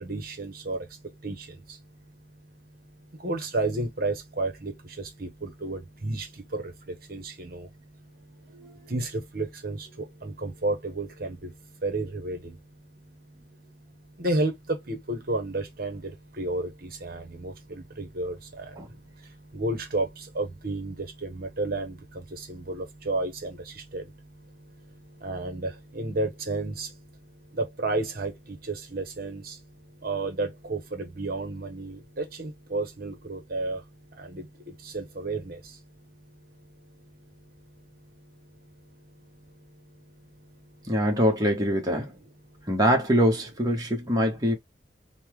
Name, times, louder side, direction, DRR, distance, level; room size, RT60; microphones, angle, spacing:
voice 1, 0.0-0.8 1.2-1.4 3.2-4.7 5.2-6.3 6.5-6.7 7.1-7.7 8.9-9.9 10.2-11.5 11.8-12.5 14.2-16.0 16.4-18.7 19.5-22.0 22.3-24.0 25.2-26.9 27.6-29.5 30.0-33.8 34.2-34.4 34.8-35.6, right 2 dB, 50° right, 1.0 m, -31 dB
voice 2, 40.9-42.1 42.7-44.6, equal, 20° right, 1.0 m, -23 dB
5.4 x 2.2 x 3.1 m
head